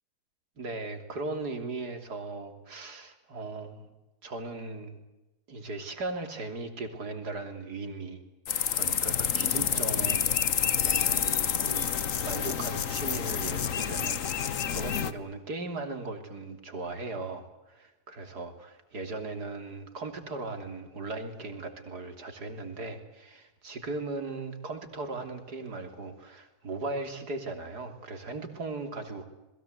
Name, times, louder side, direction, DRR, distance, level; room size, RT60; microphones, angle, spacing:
voice 1, 0.6-3.9 4.2-5.0 5.5-8.2 8.7-11.9 12.2-29.3, right 3 dB, 75° right, 7 dB, 3.6 m, -38 dB
sound 1, 8.4-15.1, left 8 dB, 55° left, 1.4 m, -28 dB
28.0 x 21.5 x 8.1 m, 1.0 s
omnidirectional pair, 1.7 m